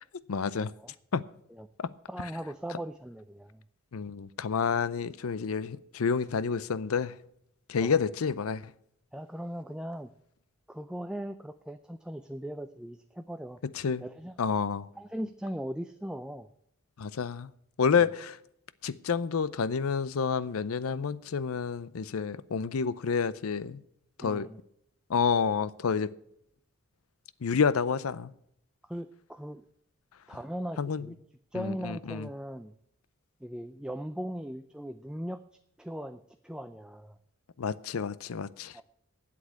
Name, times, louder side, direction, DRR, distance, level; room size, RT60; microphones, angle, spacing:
voice 1, 0.3-0.7 1.1-1.2 3.9-7.1 7.7-8.6 13.7-14.0 14.4-14.9 17.0-17.5 17.8-18.4 18.8-23.8 24.2-24.5 25.1-26.1 27.4-28.3 30.8-31.1 31.5-32.3 37.6-38.8, left 6 dB, 85° left, 0.5 m, -29 dB
voice 2, 2.1-3.6 7.8-8.0 9.1-10.1 10.7-13.6 14.0-14.3 15.0-16.5 17.9-18.1 24.2-24.6 28.8-29.6 30.3-31.1 31.5-32.7 33.4-35.4 35.8-37.2 38.7-38.8, equal, 5° right, 0.4 m, -39 dB
8.5 x 8.1 x 8.5 m
head